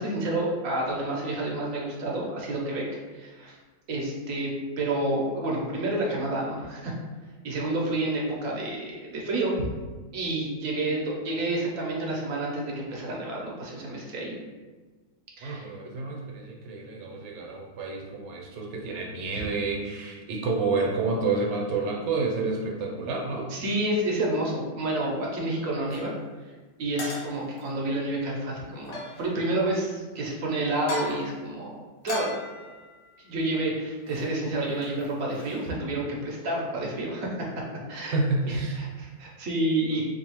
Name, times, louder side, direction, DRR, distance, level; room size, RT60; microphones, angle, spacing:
voice 1, 0.0-2.8 3.1-3.6 3.9-4.5 4.8-6.9 7.4-9.7 10.1-14.3 15.4-15.7 19.3-19.4 23.5-26.1 26.8-31.8 32.0-32.3 33.2-37.3 37.9-38.2 38.5-40.0, right 2 dB, 55° right, -2 dB, 1.0 m, -29 dB
voice 2, 15.4-23.5 38.0-38.8, right 3 dB, 70° right, 0 dB, 1.3 m, -29 dB
sound 1, 25.9-26.1 27.0-27.7 28.8-29.5 30.7-31.3 32.0-33.6 34.0-34.3 34.6-35.7, left 2 dB, 90° left, 1.6 m, -38 dB
4.6 x 2.7 x 3.0 m, 1.3 s
omnidirectional pair, 2.0 m